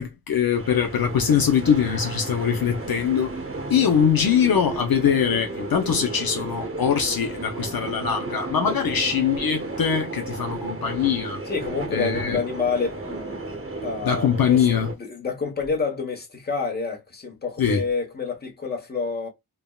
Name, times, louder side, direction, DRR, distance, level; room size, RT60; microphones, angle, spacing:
voice 1, 0.0-3.3 3.7-11.4 11.9-12.4 14.0-14.9 17.6-17.8, left 7 dB, 65° left, 0.6 m, -22 dB
sound 1, 0.5-14.9, right 3 dB, 35° right, 0.9 m, -33 dB
voice 2, 11.5-14.7 15.0-19.3, left 5 dB, 25° left, 1.0 m, -28 dB
3.4 x 2.2 x 2.2 m
wide cardioid pair, 110°, 38 cm